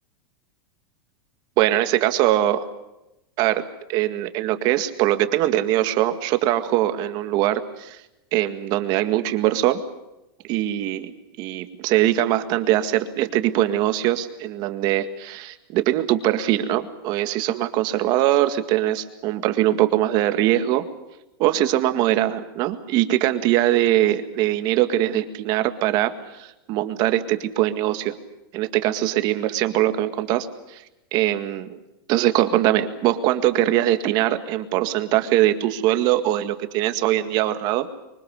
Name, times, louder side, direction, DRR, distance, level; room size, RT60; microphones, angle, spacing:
voice 1, 1.6-2.7 3.4-8.0 8.3-9.8 10.4-20.8 21.4-28.1 28.5-30.8 31.1-31.8 32.1-37.9, right 13 dB, 35° right, 9 dB, 1.9 m, -22 dB
24.5 x 24.0 x 6.5 m, 0.94 s
supercardioid pair, 160°, 12 cm